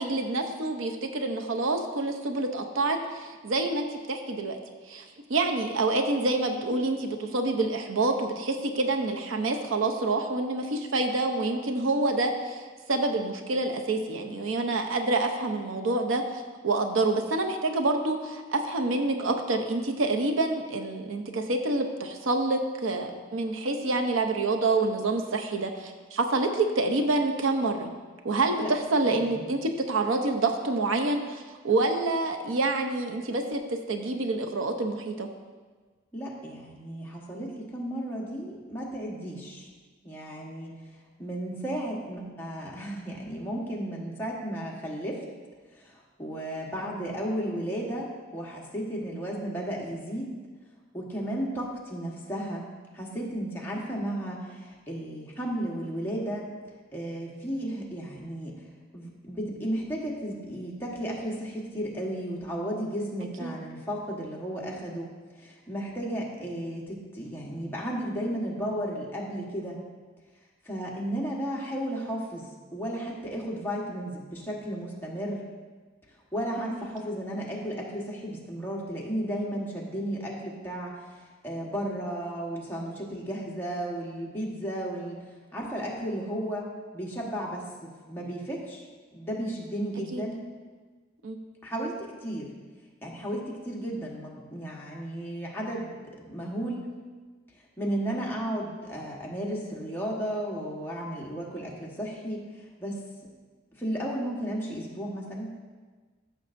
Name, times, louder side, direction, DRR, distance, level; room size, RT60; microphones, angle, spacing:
voice 1, 0.0-4.6 4.9-27.9 28.2-35.3 46.8-47.0 63.4-63.5 76.6-76.9 90.1-90.2 91.2-91.4, right 2 dB, 90° right, 4 dB, 0.7 m, -27 dB
voice 2, 29.1-29.5 36.1-39.7 40.0-40.7 41.2-45.2 45.7-50.4 50.9-52.7 52.9-56.5 56.9-58.6 58.9-65.1 65.4-69.8 70.6-75.4 76.3-81.0 81.4-85.2 85.5-86.7 86.9-88.8 89.1-90.4 91.6-92.5 93.0-96.9 97.8-102.4 102.8-103.0 103.8-105.5, right 1 dB, 10° left, -4 dB, 1.3 m, -34 dB
13.5 x 6.6 x 2.6 m, 1.4 s
head